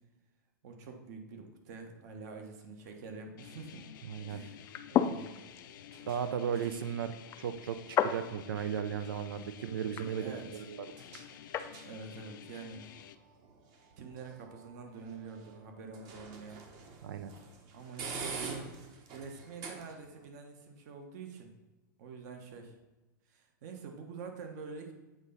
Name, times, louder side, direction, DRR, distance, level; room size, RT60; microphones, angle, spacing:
voice 1, 0.6-3.8 4.3-5.3 9.8-10.6 11.8-12.8 14.0-16.6 17.7-18.6 19.1-21.5 22.0-22.7 23.3-24.9, right 4 dB, 55° right, 4 dB, 1.2 m, -46 dB
sound 1, 2.8-20.3, right 4 dB, 35° right, 1.1 m, -49 dB
sound 2, 3.4-13.2, left 10 dB, 75° left, 0.5 m, -52 dB
voice 2, 4.1-4.4 6.1-10.9 17.0-17.3, right 8 dB, 85° right, 11 dB, 0.5 m, -36 dB
sound 3, 4.6-11.7, left 9 dB, 25° left, 0.4 m, -36 dB
8.0 x 3.8 x 5.5 m, 1.1 s
supercardioid pair, 145°, 11 cm